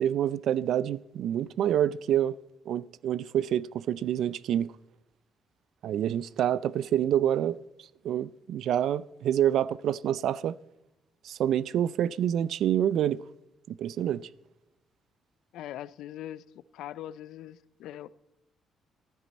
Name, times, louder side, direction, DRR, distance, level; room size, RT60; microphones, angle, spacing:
voice 1, 0.0-2.4 2.7-4.7 5.8-7.6 8.0-10.6 11.2-13.2 13.7-14.2, right 10 dB, 75° right, 0.4 m, -27 dB
voice 2, 15.5-18.1, left 12 dB, 85° left, 0.4 m, -41 dB
14.5 x 13.0 x 4.2 m
cardioid pair, 90°, 0 cm